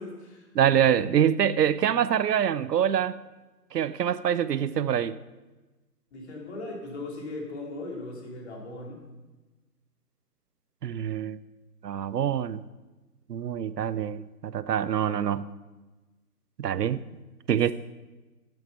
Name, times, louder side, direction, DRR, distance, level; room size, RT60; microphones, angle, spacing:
voice 1, 0.0-0.5 6.1-9.0, left 2 dB, 40° left, 2.8 m, -38 dB
voice 2, 0.6-3.2 3.7-5.2 10.8-11.4 11.8-12.6 13.3-15.5 16.6-17.0 17.5-17.7, right 9 dB, 75° right, 0.6 m, -25 dB
10.5 x 7.9 x 5.7 m
hypercardioid pair, 155°, 49 cm